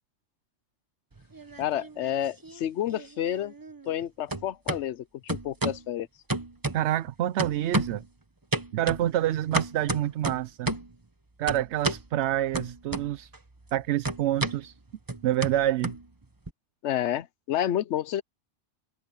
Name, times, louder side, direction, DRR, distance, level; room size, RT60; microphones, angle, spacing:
sound 1, 1.2-2.1 2.4-4.0 4.3-4.8 5.3-5.9 6.3-7.1 7.4-8.1 8.5-11.0 11.5-12.1 12.5-13.4 13.6-16.5, right 2 dB, 20° right, 1.1 m, -32 dB
voice 1, 1.6-3.5 3.9-6.1 16.8-18.2, left 11 dB, 80° left, 1.0 m, -30 dB
voice 2, 6.7-8.0 8.7-10.7 11.4-13.3 13.7-14.8 15.2-16.0, right 12 dB, 75° right, 0.9 m, -27 dB
omnidirectional pair, 1.2 m